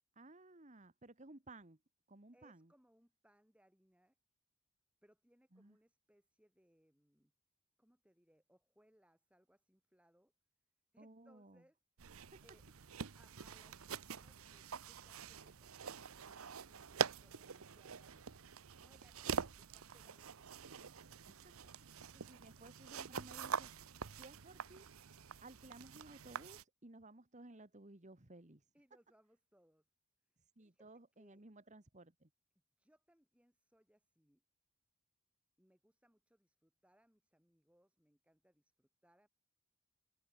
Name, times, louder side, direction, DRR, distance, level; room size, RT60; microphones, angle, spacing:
voice 1, 0.1-1.8 2.1-2.7 5.5-5.8 11.0-11.6 12.3-12.4 21.3-21.7 22.3-23.7 24.1-24.9 25.4-28.6 30.6-32.3, right 2 dB, 35° right, 1.6 m, -57 dB
voice 2, 2.3-4.2 5.0-7.3 7.8-10.3 10.9-11.8 12.4-21.2 28.7-29.9 30.3-31.4 32.8-34.4 35.6-39.3, equal, 5° right, 5.1 m, -72 dB
sound 1, 12.0-26.6, right 6 dB, 80° right, 0.9 m, -45 dB
open air
head